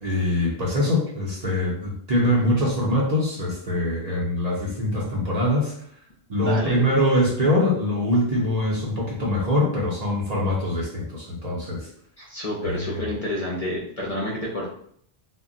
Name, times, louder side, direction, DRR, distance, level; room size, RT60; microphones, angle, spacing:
voice 1, 0.0-5.7 6.3-11.9 12.6-13.1, left 1 dB, 45° right, -4 dB, 0.7 m, -23 dB
voice 2, 6.4-6.8 12.2-14.7, left 1 dB, 45° left, -4 dB, 0.6 m, -29 dB
2.2 x 2.1 x 3.7 m, 0.64 s
omnidirectional pair, 1.1 m